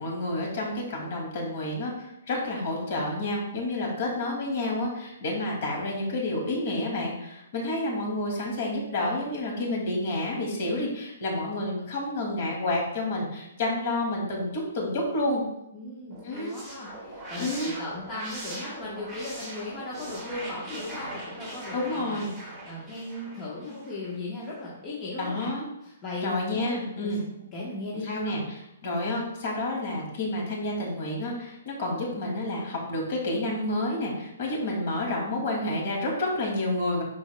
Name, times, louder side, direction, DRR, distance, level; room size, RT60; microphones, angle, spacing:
voice 1, 0.0-15.4 16.2-16.6 17.4-17.7 21.7-22.3 25.2-25.6 26.2-27.2 27.9-37.0, left 1 dB, 40° left, -1 dB, 2.3 m, -29 dB
voice 2, 15.7-25.5 25.8-26.8 27.0-27.1 27.5-28.3, left 2 dB, 15° left, -7 dB, 1.1 m, -37 dB
sound 1, 16.1-24.2, right 1 dB, 5° right, 1.8 m, -41 dB
11.5 x 4.5 x 2.2 m, 0.83 s
hypercardioid pair, 175°, 0 cm